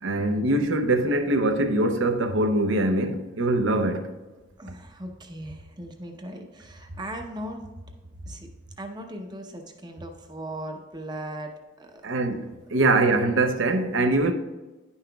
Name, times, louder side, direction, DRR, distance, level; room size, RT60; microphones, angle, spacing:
voice 1, 0.0-4.1 12.0-12.4 12.7-14.3, right 2 dB, 65° right, 0.6 m, -23 dB
voice 2, 4.6-7.7 8.0-12.2, right 1 dB, 20° right, 0.7 m, -38 dB
10.0 x 5.5 x 2.3 m
head